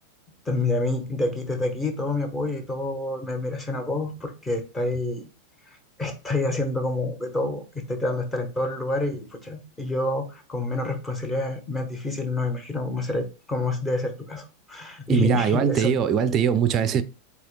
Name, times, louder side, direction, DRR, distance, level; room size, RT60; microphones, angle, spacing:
voice 1, 0.5-5.3 6.0-15.9, left 2 dB, 15° left, 1.1 m, -28 dB
voice 2, 15.1-17.0, right 8 dB, 30° right, 0.5 m, -21 dB
7.7 x 2.9 x 2.3 m
figure-of-eight pair, 90°, 0 cm